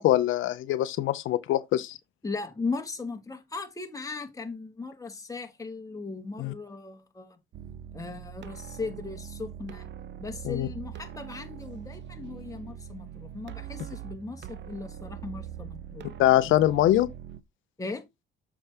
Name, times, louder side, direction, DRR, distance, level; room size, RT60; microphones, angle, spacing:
voice 1, 0.0-2.0 6.4-6.5 10.4-10.7 16.2-17.1, left 13 dB, 85° left, 0.6 m, -23 dB
voice 2, 2.2-7.4 7.9-9.9 10.2-16.0 17.8-18.1, left 4 dB, 15° left, 1.6 m, -37 dB
sound 1, 7.5-17.4, right 10 dB, 65° right, 0.7 m, -42 dB
7.2 x 4.6 x 3.4 m
cardioid pair, 90°, 20 cm